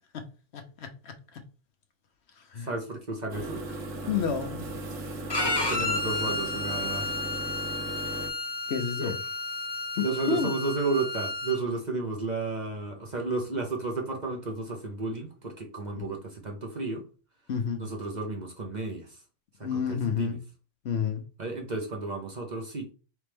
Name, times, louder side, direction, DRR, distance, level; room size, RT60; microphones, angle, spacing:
voice 1, 0.5-1.4 2.4-2.7 4.1-4.6 8.7-9.2 9.9-10.5 15.9-16.1 17.5-17.8 19.6-20.4 20.8-21.2, left 7 dB, 65° left, 0.9 m, -30 dB
voice 2, 2.6-3.6 5.4-7.2 9.0-9.1 10.0-17.0 17.8-19.2 19.6-20.4 21.4-22.9, right 3 dB, 40° right, 0.8 m, -33 dB
sound 1, 3.3-8.3, right 2 dB, 80° right, 1.3 m, -37 dB
Bowed string instrument, 5.3-11.6, left 2 dB, 30° left, 0.5 m, -32 dB
4.2 x 3.4 x 3.4 m
omnidirectional pair, 1.3 m